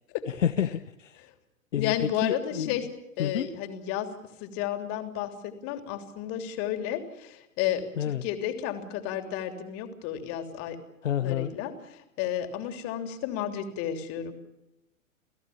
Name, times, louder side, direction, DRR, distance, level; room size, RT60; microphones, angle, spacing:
voice 1, 0.3-1.3 1.7-2.9 3.2-3.5 8.0-8.3 11.0-11.5, left 9 dB, 65° left, 8 dB, 1.2 m, -29 dB
voice 2, 1.8-2.9 3.2-4.1 4.4-10.8 11.2-14.3, left 10 dB, 35° left, 6 dB, 3.4 m, -32 dB
30.0 x 17.0 x 7.2 m, 0.92 s
figure-of-eight pair, 105°, 41 cm